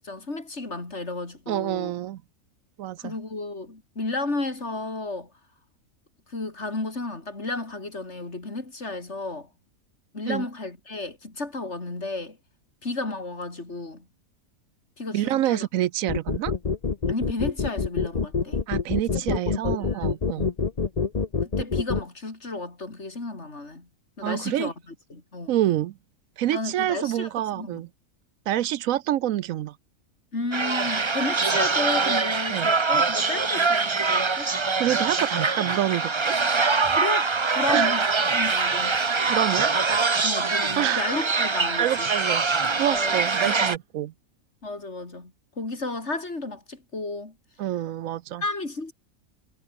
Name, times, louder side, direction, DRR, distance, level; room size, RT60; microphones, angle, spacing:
voice 1, 0.0-1.9 3.0-5.3 6.3-9.5 10.1-12.4 12.8-14.1 15.0-15.6 17.1-18.6 19.1-20.1 20.3-20.5 21.6-23.9 24.2-24.7 25.1-25.5 26.5-27.3 27.6-27.9 30.3-34.5 37.0-38.1 38.3-39.0 40.2-42.1 42.8-43.1 43.4-43.7 44.6-45.3 45.6-47.3 48.4-48.9, left 2 dB, 55° left, 4.4 m, -33 dB
voice 2, 1.5-2.2 2.8-3.1 10.3-10.5 15.1-16.5 18.7-20.5 24.2-24.7 25.5-26.0 26.4-27.9 28.5-29.8 32.5-32.7 34.8-36.3 37.7-38.0 39.3-39.7 40.8-41.1 41.8-44.1 47.6-48.4, right 13 dB, 75° right, 1.0 m, -27 dB
sound 1, 16.1-22.0, left 5 dB, 30° left, 1.0 m, -26 dB
sound 2, 30.5-43.8, right 4 dB, 25° right, 0.7 m, -24 dB
omnidirectional pair, 1.4 m